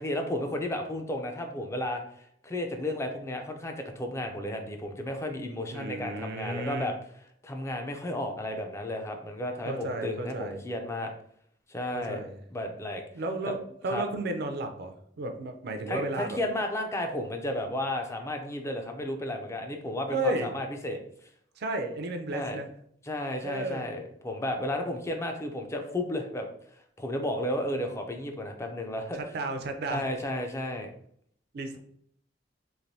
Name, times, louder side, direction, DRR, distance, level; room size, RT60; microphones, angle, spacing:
voice 1, 0.0-2.0 2.4-6.9 7.4-11.1 11.7-12.2 12.5-13.0 13.5-13.6 13.9-14.0 15.9-21.0 22.3-22.6 23.0-26.5 27.0-29.2 29.9-30.9, left 1 dB, 15° left, 4 dB, 0.4 m, -33 dB
voice 2, 5.7-6.9 9.7-10.6 11.9-12.4 13.1-16.4 20.1-20.5 21.6-22.7 23.4-23.9 29.1-30.1 31.5-31.8, right 2 dB, 60° right, 6 dB, 0.4 m, -33 dB
3.2 x 2.5 x 2.6 m, 0.67 s
head